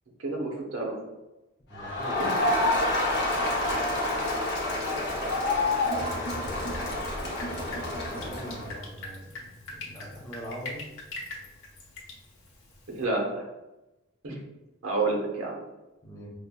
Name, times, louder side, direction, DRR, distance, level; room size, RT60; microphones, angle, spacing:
voice 1, 0.2-1.0 2.2-2.3 12.9-13.5 14.2-14.4 14.8-15.6, right 3 dB, 85° right, 0 dB, 0.9 m, -29 dB
Crowd, 1.7-8.8, left 2 dB, 50° left, 0.8 m, -28 dB
voice 2, 1.7-2.3 6.0-6.7 8.1-10.8 16.0-16.3, equal, 15° left, -4 dB, 0.6 m, -42 dB
Drip, 6.5-13.0, left 2 dB, 75° left, 1.0 m, -43 dB
5.1 x 2.1 x 2.2 m, 1.0 s
head